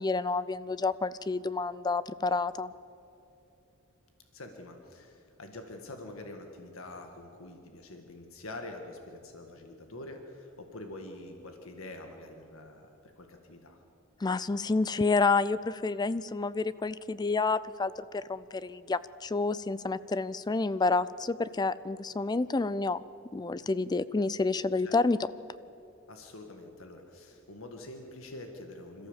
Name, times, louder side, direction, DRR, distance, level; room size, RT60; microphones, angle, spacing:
voice 1, 0.0-2.7 14.2-23.0 23.3-25.3, left 3 dB, 20° left, 17 dB, 0.4 m, -29 dB
voice 2, 4.3-13.8 24.8-24.9 26.1-29.1, left 2 dB, 75° left, 4 dB, 1.7 m, -46 dB
26.5 x 14.0 x 7.3 m, 2.8 s
head